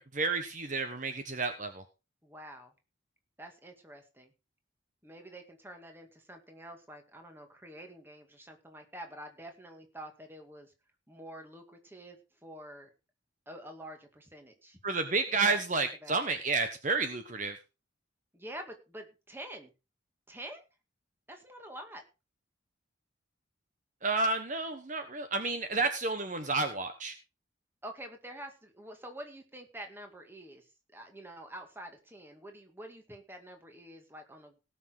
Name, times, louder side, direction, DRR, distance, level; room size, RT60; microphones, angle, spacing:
voice 1, 0.1-1.8 14.8-17.6 24.0-27.1, right 3 dB, 40° right, 7 dB, 1.1 m, -31 dB
voice 2, 2.2-2.7 3.4-4.3 5.0-10.7 11.1-12.9 13.5-14.8 15.5-15.6 16.0-16.2 18.3-19.7 20.3-20.6 21.3-22.0 27.8-30.7 30.9-34.6, right 1 dB, 10° right, 4 dB, 2.1 m, -47 dB
18.5 x 6.2 x 4.7 m, 0.30 s
head